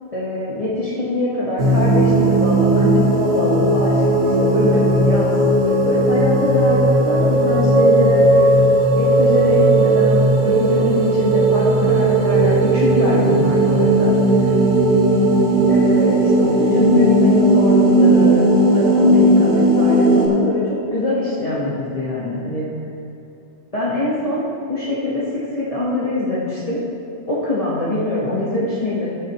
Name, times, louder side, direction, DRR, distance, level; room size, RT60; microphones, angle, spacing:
voice 1, 0.1-5.3 5.8-8.4 9.0-14.1 15.7-22.7 23.7-26.8 27.3-29.1, left 1 dB, 30° left, -8 dB, 1.5 m, -23 dB
sound 1, 1.6-20.3, right 1 dB, 90° right, 2.3 m, -15 dB
13.5 x 9.1 x 3.1 m, 2.8 s
omnidirectional pair, 1.2 m